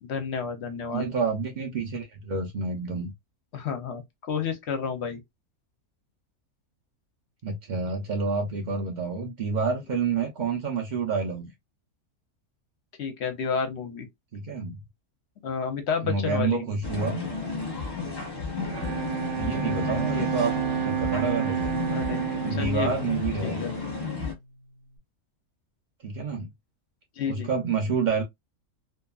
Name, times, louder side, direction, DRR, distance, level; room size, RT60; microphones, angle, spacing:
voice 1, 0.0-1.1 3.5-5.2 13.0-14.1 15.4-16.6 21.9-22.9 23.4-23.7 27.2-27.5, left 6 dB, 60° left, 0.8 m, -31 dB
voice 2, 0.9-3.1 7.4-11.5 14.3-14.8 16.0-17.2 19.4-20.5 20.8-21.7 22.4-23.6 26.0-26.5 27.3-28.2, right 4 dB, 90° right, 0.4 m, -28 dB
sound 1, 16.8-24.3, left 4 dB, 35° left, 0.3 m, -32 dB
Bowed string instrument, 18.6-24.2, right 9 dB, 60° right, 0.9 m, -30 dB
2.7 x 2.3 x 2.3 m
omnidirectional pair, 1.5 m